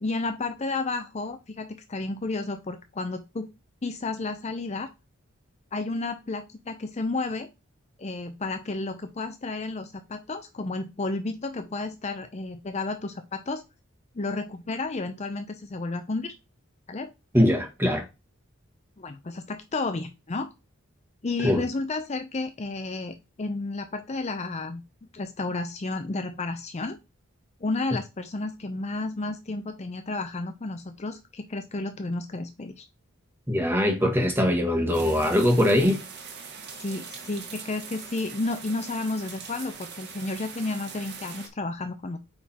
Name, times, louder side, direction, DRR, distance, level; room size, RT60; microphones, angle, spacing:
voice 1, 0.0-3.5 3.8-4.9 5.7-7.5 8.0-13.6 14.2-16.3 16.9-17.1 19.0-20.5 21.2-24.8 25.1-27.0 27.6-32.8 36.8-42.2, left 3 dB, 30° left, 0.5 m, -32 dB
voice 2, 17.3-18.0 21.4-21.6 33.5-36.0, left 1 dB, 10° right, 1.5 m, -22 dB
sound 1, 34.9-41.5, right 5 dB, 50° right, 1.6 m, -42 dB
8.7 x 3.8 x 4.3 m
head